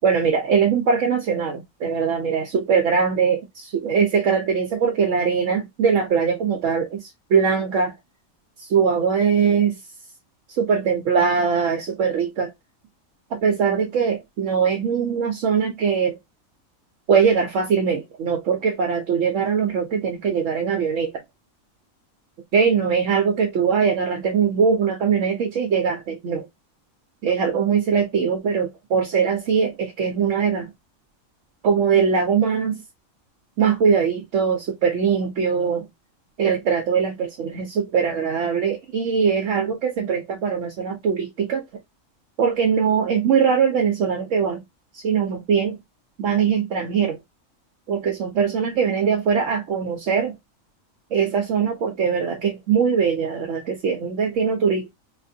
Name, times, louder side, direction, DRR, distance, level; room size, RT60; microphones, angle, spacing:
voice 1, 0.0-7.0 7.3-7.9 8.7-9.8 10.6-12.5 13.3-16.1 17.1-21.1 22.5-26.4 27.2-30.7 31.6-32.8 33.6-35.8 36.4-41.6 42.4-44.6 45.0-45.8 46.2-47.2 47.9-50.3 51.1-54.9, right 6 dB, 70° right, 1.0 m, -21 dB
4.4 x 2.5 x 2.6 m
omnidirectional pair, 1.4 m